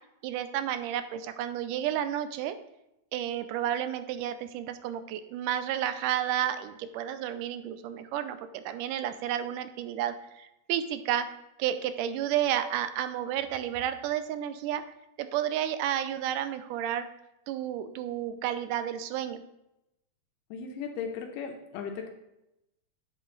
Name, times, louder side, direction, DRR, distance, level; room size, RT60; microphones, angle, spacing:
voice 1, 0.2-2.6 3.1-11.3 11.6-14.8 15.2-17.1 17.5-19.4, right 11 dB, 85° right, 11 dB, 2.1 m, -31 dB
voice 2, 20.5-22.1, left 6 dB, 90° left, 3 dB, 2.4 m, -36 dB
8.1 x 6.9 x 3.8 m, 0.87 s
omnidirectional pair, 3.7 m